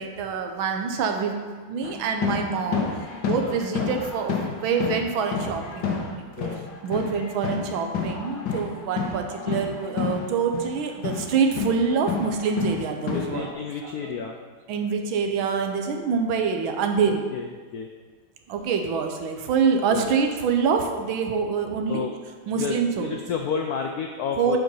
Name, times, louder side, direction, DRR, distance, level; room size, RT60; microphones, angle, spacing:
voice 1, 0.0-6.5 6.8-13.5 13.8-13.9 14.7-17.2 18.5-22.1 22.5-23.1 24.4-24.6, right 5 dB, 80° right, 4 dB, 1.6 m, -26 dB
sound 1, 1.8-6.1 6.4-10.3 10.5-13.5, left 5 dB, 65° left, 1.7 m, -30 dB
voice 2, 13.1-14.4 17.1-17.5 17.7-17.9 19.9-20.1 21.9-22.1 22.6-24.6, left 6 dB, 80° left, 3 dB, 0.8 m, -30 dB
7.6 x 4.8 x 5.4 m, 1.4 s
omnidirectional pair, 2.2 m